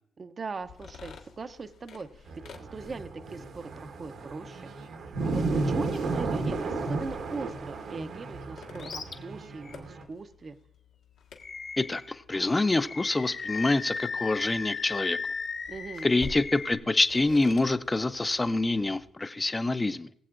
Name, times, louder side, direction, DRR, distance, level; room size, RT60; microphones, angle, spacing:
voice 1, 0.2-2.3 2.6-4.7 5.2-10.6 15.7-16.2, right 4 dB, 35° right, 0.6 m, -40 dB
sound 1, 0.6-19.1, left 5 dB, 85° left, 1.7 m, -50 dB
sound 2, 2.3-10.0, right 3 dB, 65° right, 1.2 m, -33 dB
Animal, 8.8-9.2 9.6-9.8 11.4-12.1 12.8-16.7, left 5 dB, 50° left, 0.9 m, -36 dB
voice 2, 11.8-15.2 16.0-20.1, left 2 dB, 20° left, 0.5 m, -26 dB
21.0 x 7.6 x 2.5 m
cardioid pair, 90°, 0 cm